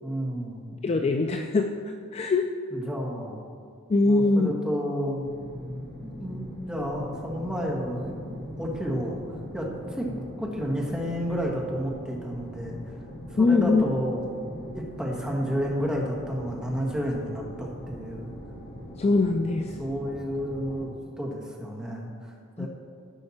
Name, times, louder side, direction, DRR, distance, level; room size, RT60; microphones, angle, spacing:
voice 1, 0.0-0.7 2.7-3.4 4.0-5.3 6.0-9.2 9.5-10.1 10.4-12.9 13.3-14.3 14.7-18.3 19.8-20.9 21.2-22.7, equal, 5° right, -2 dB, 1.5 m, -31 dB
voice 2, 0.8-1.7 2.1-2.5 3.9-4.5 13.4-13.8 19.0-19.7 22.6-22.7, left 3 dB, 30° left, 5 dB, 0.4 m, -22 dB
sound 1, 5.2-20.9, equal, 50° left, 2.1 m, -41 dB
15.5 x 5.6 x 4.3 m, 2.3 s
head